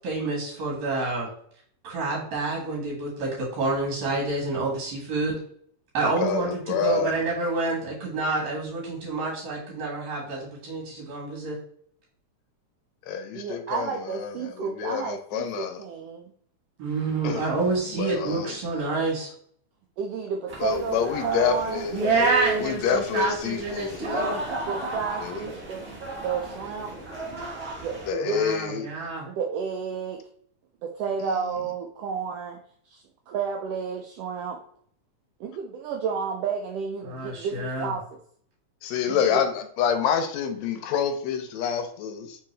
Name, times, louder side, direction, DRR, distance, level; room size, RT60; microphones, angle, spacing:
voice 1, 0.0-1.3 1.8-5.4 5.9-11.6 16.8-19.3 21.9-24.4 28.2-29.3 37.0-37.9, right 3 dB, 70° right, -3 dB, 2.5 m, -28 dB
voice 2, 6.2-7.1 13.1-15.8 17.2-17.5 17.9-18.5 20.6-22.0 22.6-24.3 25.2-25.4 28.1-28.9 31.2-31.3 38.8-42.4, left 7 dB, 80° left, 7 dB, 1.7 m, -27 dB
voice 3, 13.3-16.3 20.0-21.0 21.2-22.7 24.7-25.9 26.2-26.9 27.8-28.4 29.3-30.2 30.8-32.6 32.9-34.6 35.4-38.2 39.1-39.4, right 6 dB, 85° right, 3 dB, 1.3 m, -31 dB
sound 1, 20.5-28.1, right 1 dB, 45° right, 1.3 m, -35 dB
4.4 x 3.5 x 3.2 m, 0.62 s
omnidirectional pair, 3.3 m